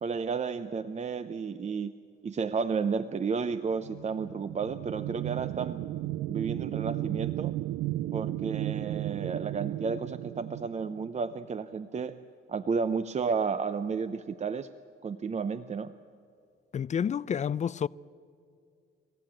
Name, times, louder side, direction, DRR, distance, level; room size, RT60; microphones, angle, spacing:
voice 1, 0.0-1.9 2.2-5.8 6.3-7.5 8.1-12.2 12.5-14.7 15.0-15.9, right 5 dB, 35° right, 0.7 m, -32 dB
sound 1, 3.7-11.4, right 15 dB, 85° right, 0.5 m, -34 dB
voice 2, 16.7-17.9, left 8 dB, 35° left, 0.4 m, -29 dB
27.0 x 14.5 x 8.8 m
cardioid pair, 90°, 20 cm